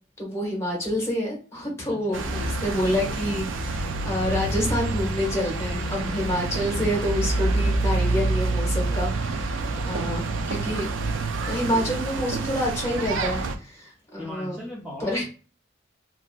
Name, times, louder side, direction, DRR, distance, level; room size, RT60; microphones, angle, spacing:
voice 1, 0.2-10.9 11.4-14.6 15.0-15.2, left 1 dB, 15° left, -3 dB, 1.1 m, -28 dB
voice 2, 1.9-2.2 9.7-10.1 14.1-15.2, left 1 dB, 5° right, -6 dB, 0.5 m, -39 dB
sound 1, 2.1-13.6, right 3 dB, 70° right, 0.4 m, -27 dB
sound 2, 2.2-5.3 5.6-8.1, left 3 dB, 55° left, 0.3 m, -35 dB
2.8 x 2.5 x 2.2 m, 0.37 s
head